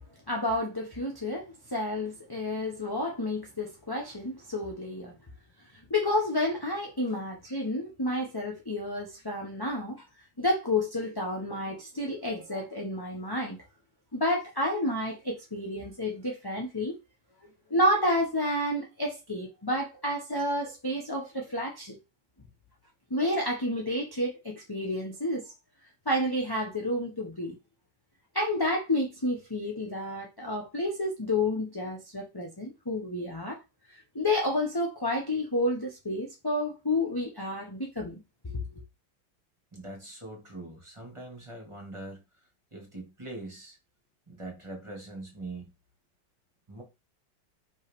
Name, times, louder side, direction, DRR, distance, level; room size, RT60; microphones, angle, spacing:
voice 1, 0.3-5.1 5.9-10.0 10.4-13.6 14.1-17.0 17.7-22.0 23.1-25.5 26.0-27.6 28.3-33.6 34.1-38.7, left 1 dB, 15° left, 1.1 m, -30 dB
voice 2, 39.7-42.2 42.7-43.8 44.3-45.7 46.7-46.8, right 2 dB, 15° right, 2.3 m, -42 dB
5.6 x 5.4 x 3.7 m
omnidirectional pair, 1.8 m